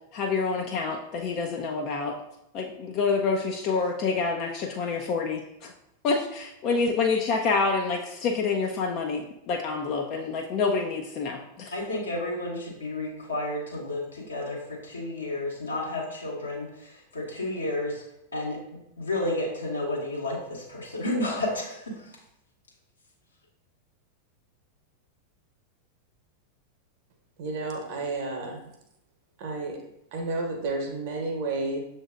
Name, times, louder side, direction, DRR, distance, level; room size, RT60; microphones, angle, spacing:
voice 1, 0.1-2.2 2.5-5.7 6.0-11.7, left 4 dB, 40° left, 1 dB, 0.4 m, -27 dB
voice 2, 11.7-18.0 18.3-22.1, left 1 dB, 75° left, -2 dB, 1.1 m, -31 dB
voice 3, 27.4-28.7 29.4-29.8 30.1-31.8, right 3 dB, 45° right, 2 dB, 0.9 m, -31 dB
6.8 x 2.6 x 2.4 m, 0.82 s
figure-of-eight pair, 90°, 0 cm